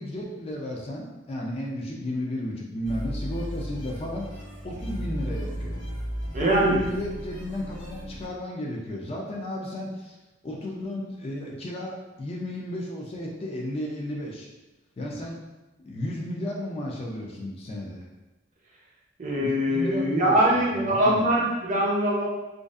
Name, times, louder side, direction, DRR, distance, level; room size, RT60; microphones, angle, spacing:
voice 1, 0.0-5.8 6.4-10.2 10.4-14.5 15.0-15.4 15.8-18.1 19.4-21.5, left 1 dB, 30° left, -2 dB, 0.3 m, -34 dB
sound 1, 2.8-8.3, equal, 75° left, 1.1 m, -35 dB
voice 2, 6.3-6.8 19.2-22.2, right 1 dB, 40° right, -4 dB, 0.6 m, -22 dB
2.5 x 2.3 x 2.3 m, 1.0 s
head